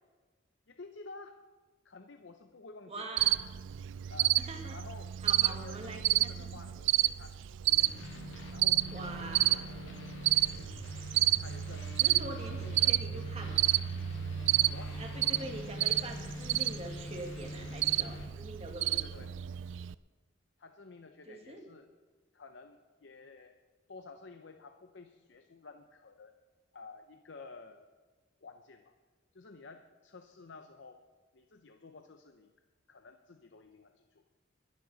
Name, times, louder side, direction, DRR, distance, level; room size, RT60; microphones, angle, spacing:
voice 1, 0.7-1.4 1.8-3.1 4.1-4.4 4.7-5.1 5.5-7.4 7.9-8.1 8.5-9.9 10.1-10.3 11.4-12.0 12.4-12.9 14.7-15.0 18.9-19.4 20.6-21.9 22.3-23.6 23.9-26.4 26.7-27.9 28.4-28.9 29.3-31.0 31.3-32.5 32.9-34.2, left 3 dB, 70° left, 7 dB, 0.7 m, -52 dB
voice 2, 2.9-3.4 4.5-4.8 5.2-6.5 8.9-9.7 12.0-13.6 15.0-19.3 21.3-21.6, right 2 dB, 35° right, 3 dB, 1.8 m, -44 dB
Cricket, 3.2-19.9, right 15 dB, 75° right, 0.4 m, -31 dB
sound 1, 7.7-18.3, left 2 dB, 90° left, 1.7 m, -45 dB
sound 2, 14.4-19.9, equal, 15° left, 3.8 m, -55 dB
21.0 x 11.5 x 4.1 m, 1.4 s
head